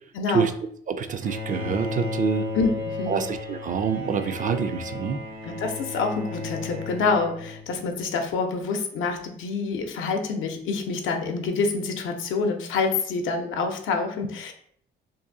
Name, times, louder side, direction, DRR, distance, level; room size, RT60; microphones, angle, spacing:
voice 1, 0.1-0.5 2.5-3.2 5.4-14.5, left 4 dB, 80° left, 4 dB, 0.7 m, -27 dB
voice 2, 0.9-2.5 3.1-5.2, right 6 dB, 40° right, 9 dB, 0.4 m, -26 dB
Bowed string instrument, 1.2-8.0, left 2 dB, 85° right, 1.3 m, -34 dB
2.7 x 2.6 x 3.7 m, 0.63 s
cardioid pair, 90°, 20 cm